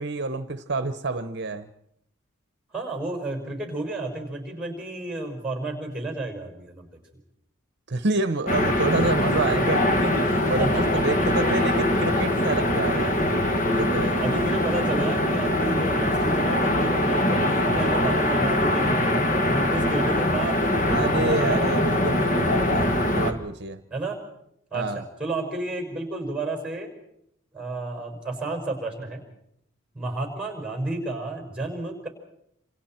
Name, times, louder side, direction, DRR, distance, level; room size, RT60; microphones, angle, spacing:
voice 1, 0.0-1.7 7.9-13.3 13.7-14.2 20.9-23.8 24.7-25.0, right 3 dB, 55° right, 10 dB, 0.9 m, -28 dB
voice 2, 2.7-6.9 10.6-11.8 14.2-21.6 23.9-24.2 24.7-26.9 27.5-29.2 29.9-32.1, right 2 dB, 5° right, 3 dB, 5.6 m, -32 dB
sound 1, 8.5-23.3, left 1 dB, 40° left, 2.0 m, -23 dB
27.5 x 27.5 x 4.5 m, 0.75 s
head